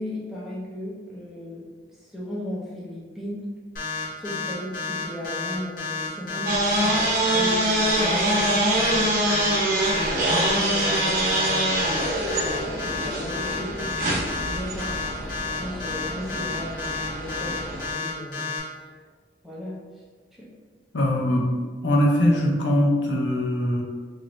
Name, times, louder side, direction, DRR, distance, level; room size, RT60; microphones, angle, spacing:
voice 1, 0.0-3.4 4.1-13.9 14.4-15.3 15.6-18.5 19.4-19.8 20.3-20.5, left 1 dB, ahead, -7 dB, 0.7 m, -36 dB
sound 1, 3.8-18.6, left 4 dB, 50° left, 1.0 m, -31 dB
sound 2, 6.5-17.9, right 1 dB, 50° right, 0.7 m, -25 dB
voice 2, 20.9-21.4 21.8-23.8, left 1 dB, 80° left, -2 dB, 0.6 m, -21 dB
3.1 x 2.6 x 3.0 m, 1.5 s
head